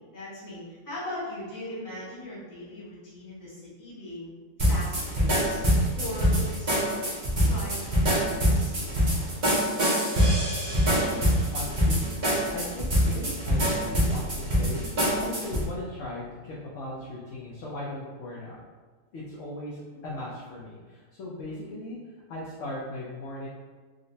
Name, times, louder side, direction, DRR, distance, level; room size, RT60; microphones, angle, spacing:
voice 1, 0.1-4.3 4.6-5.6 5.9-7.1 7.4-9.4, left 1 dB, 15° left, -9 dB, 0.7 m, -39 dB
sound 1, 4.6-15.6, equal, 45° right, 0.5 m, -24 dB
voice 2, 10.8-11.2 11.5-12.1 12.5-14.9 15.2-18.6 19.1-22.0 22.3-23.5, left 1 dB, 65° left, -5 dB, 0.7 m, -38 dB
3.9 x 2.1 x 2.6 m, 1.5 s
omnidirectional pair, 1.7 m